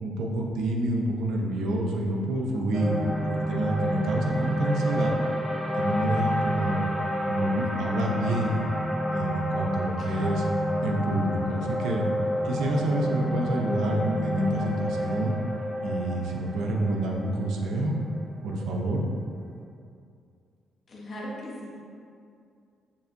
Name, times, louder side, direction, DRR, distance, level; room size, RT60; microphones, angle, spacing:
voice 1, 0.0-5.2 5.7-6.8 7.3-8.7 9.1-10.4 10.8-12.1 12.4-15.3 15.8-18.0 18.4-19.0, right 1 dB, 80° right, 0 dB, 0.5 m, -28 dB
sound 1, 2.7-19.0, equal, 10° right, 0.6 m, -29 dB
voice 2, 10.0-10.5 20.9-21.7, equal, 50° left, -5 dB, 1.1 m, -39 dB
6.7 x 2.6 x 2.6 m, 2.3 s
cardioid pair, 90°, 0 cm